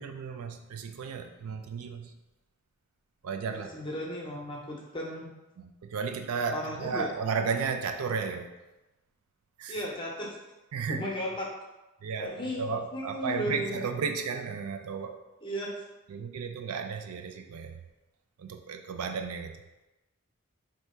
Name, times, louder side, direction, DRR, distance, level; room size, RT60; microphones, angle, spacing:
voice 1, 0.0-2.1 3.2-3.7 5.6-8.6 9.6-9.8 10.7-11.0 12.0-15.2 16.1-17.8 18.4-19.6, right 5 dB, 80° right, 6 dB, 0.4 m, -34 dB
voice 2, 3.5-5.3 6.5-7.1 9.7-10.4 10.9-11.5 12.2-13.8 15.4-15.7, equal, 20° left, -2 dB, 0.7 m, -35 dB
3.4 x 2.7 x 4.4 m, 1.0 s
head